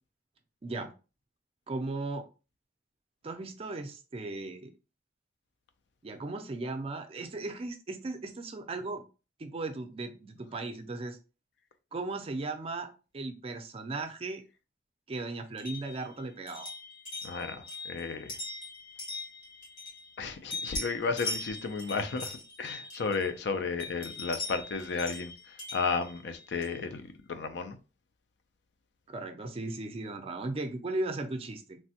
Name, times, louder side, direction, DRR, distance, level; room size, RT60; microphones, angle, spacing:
voice 1, 0.6-0.9 1.7-2.3 3.2-4.7 6.0-9.0 9.4-11.2 11.9-12.9 13.1-14.4 15.1-16.7 29.1-31.8, right 2 dB, 35° right, 0.4 m, -36 dB
sound 1, 15.6-20.2 20.5-23.4 23.8-26.9, left 2 dB, 90° left, 1.3 m, -41 dB
voice 2, 17.2-18.3 20.2-22.3 22.6-25.3 25.7-27.0 27.3-27.8, left 4 dB, 70° left, 0.4 m, -33 dB
3.2 x 2.1 x 2.7 m
head